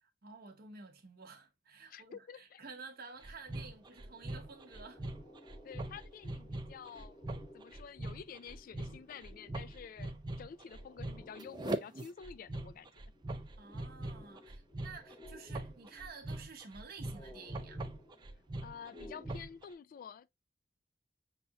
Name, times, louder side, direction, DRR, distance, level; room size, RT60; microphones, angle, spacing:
voice 1, 0.0-5.1 13.6-17.8, right 4 dB, 55° right, 0.8 m, -51 dB
voice 2, 1.9-2.6 5.6-7.2 7.5-12.9 18.6-20.3, left 7 dB, 50° left, 0.3 m, -50 dB
sound 1, 2.8-2.9 3.2-19.3, left 1 dB, 20° left, 0.9 m, -58 dB
sound 2, 3.2-19.6, right 2 dB, 25° right, 0.4 m, -42 dB
5.4 x 2.8 x 2.3 m
head